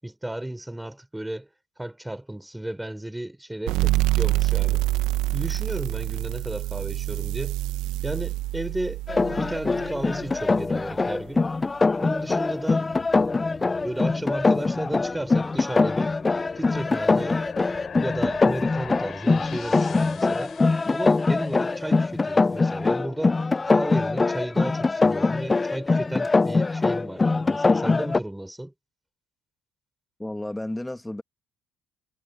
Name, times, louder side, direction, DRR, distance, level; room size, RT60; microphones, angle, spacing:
voice 1, 0.0-1.5 1.8-4.8 5.3-7.6 8.0-9.0 9.4-11.4 12.0-12.9 13.8-16.1 16.5-17.4 18.0-20.5 20.9-23.4 23.7-28.7, right 1 dB, 10° right, 6.2 m, -33 dB
sound 1, 3.7-10.9, right 17 dB, 75° right, 1.1 m, -27 dB
sound 2, 9.1-28.2, left 3 dB, 25° left, 0.4 m, -23 dB
sound 3, 12.9-22.3, left 7 dB, 50° left, 4.7 m, -43 dB
voice 2, 30.2-31.2, left 1 dB, 10° left, 2.3 m, -32 dB
hypercardioid pair, 65°, 0 cm